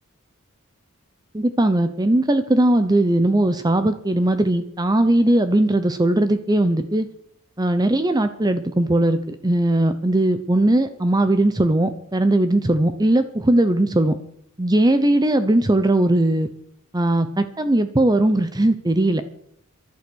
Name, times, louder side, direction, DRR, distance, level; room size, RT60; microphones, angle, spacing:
voice 1, 1.3-7.1 7.6-14.2 14.6-16.5 16.9-19.2, right 1 dB, 20° right, 10 dB, 0.8 m, -19 dB
15.0 x 11.5 x 6.3 m, 0.67 s
head